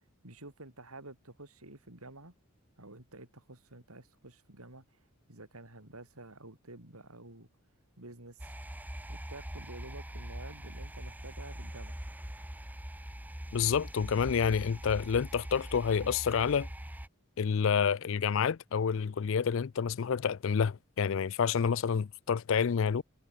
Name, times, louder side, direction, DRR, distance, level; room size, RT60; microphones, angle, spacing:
voice 1, 0.2-2.3 2.8-5.0 5.3-7.5 8.0-8.5 9.1-12.0, right 2 dB, 85° right, 5.6 m, -50 dB
sound 1, 8.4-17.1, equal, 10° right, 1.2 m, -43 dB
voice 2, 13.5-16.7 17.4-23.0, left 6 dB, 60° left, 0.4 m, -28 dB
head